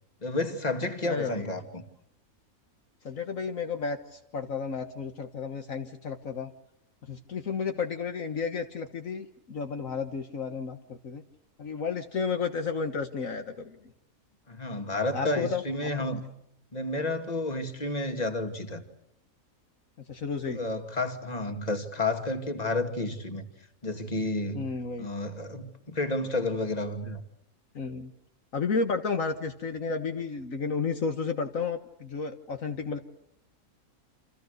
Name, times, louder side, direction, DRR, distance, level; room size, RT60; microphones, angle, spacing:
voice 1, 0.2-1.8 14.5-16.2 16.7-18.8 20.5-23.4 23.8-24.7 25.0-27.2, left 2 dB, 25° left, 2.5 m, -31 dB
voice 2, 1.0-1.5 3.0-6.5 7.0-11.2 11.6-13.9 15.1-15.6 16.0-16.1 20.1-20.6 24.5-25.1 27.8-28.1 28.5-33.0, left 5 dB, 65° left, 1.8 m, -32 dB
28.5 x 27.5 x 6.6 m
omnidirectional pair, 1.5 m